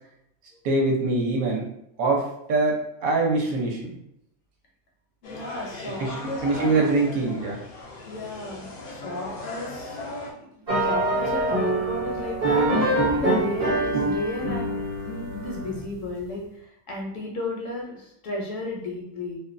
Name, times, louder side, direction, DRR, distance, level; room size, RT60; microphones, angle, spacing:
voice 1, 0.6-1.7 2.0-4.0 6.0-6.2 6.4-7.6, right 3 dB, 70° right, -1 dB, 1.0 m, -23 dB
sound 1, 5.2-10.3, left 2 dB, 85° left, 0.4 m, -38 dB
voice 2, 5.2-6.8 8.1-10.0 10.4-19.4, left 2 dB, 70° left, -2 dB, 0.9 m, -34 dB
sound 2, 10.7-15.9, right 1 dB, 40° right, 0.6 m, -25 dB
2.6 x 2.2 x 2.4 m, 0.76 s
omnidirectional pair, 1.6 m